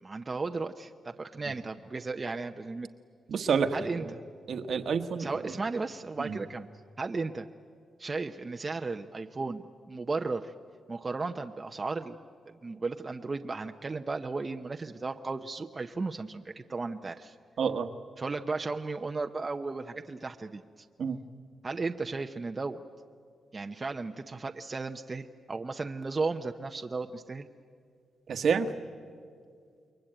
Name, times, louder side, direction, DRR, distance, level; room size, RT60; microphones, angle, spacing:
voice 1, 0.0-2.9 3.7-4.2 5.2-6.7 7.0-7.5 8.0-10.5 10.9-12.2 12.5-17.4 18.2-20.9 21.6-22.8 23.5-27.5, right 3 dB, 30° right, 5 dB, 0.8 m, -35 dB
voice 2, 3.3-4.1 4.5-5.5 6.2-6.4 17.6-17.9 21.0-21.2 28.3-28.7, right 6 dB, 65° right, 8 dB, 1.4 m, -29 dB
28.5 x 22.5 x 9.0 m, 2.2 s
cardioid pair, 100°, 0 cm